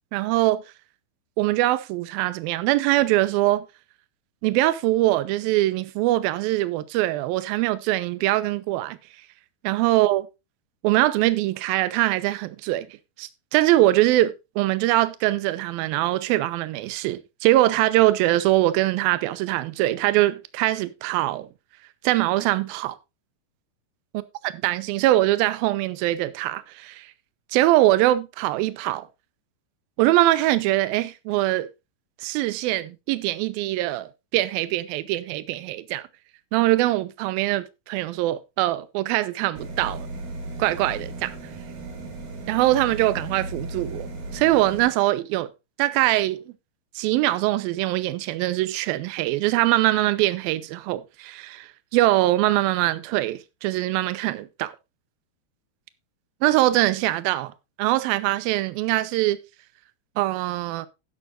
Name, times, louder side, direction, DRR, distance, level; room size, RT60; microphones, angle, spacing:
voice 1, 0.1-0.6 1.4-3.7 4.4-9.0 9.6-10.3 10.8-12.9 13.2-21.5 22.0-23.0 24.6-27.1 27.5-29.1 30.0-31.7 32.2-36.0 36.5-40.1 40.6-41.4 42.5-45.5 45.8-46.4 47.0-54.7 56.4-57.5 57.8-59.4 60.2-60.9, right 16 dB, 80° right, 2.5 m, -22 dB
sound 1, 39.6-44.9, right 2 dB, 65° right, 4.2 m, -36 dB
12.0 x 11.0 x 2.5 m
omnidirectional pair, 4.4 m